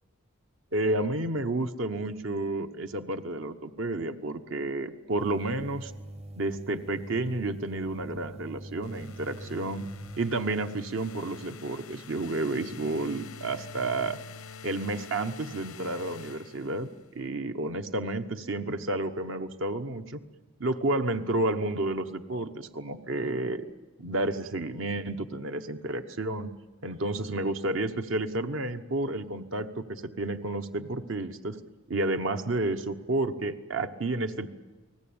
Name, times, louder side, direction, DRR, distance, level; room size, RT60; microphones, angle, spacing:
voice 1, 0.7-5.9 6.4-9.8 10.2-14.2 14.6-20.2 20.6-23.6 24.0-26.5 26.8-31.6 31.9-34.5, right 2 dB, 65° right, 7 dB, 1.1 m, -31 dB
sound 1, 5.2-10.2, right 1 dB, 30° right, 0.8 m, -43 dB
sound 2, 8.8-17.1, left 5 dB, 85° left, 0.9 m, -46 dB
30.0 x 19.0 x 8.8 m, 1.3 s
head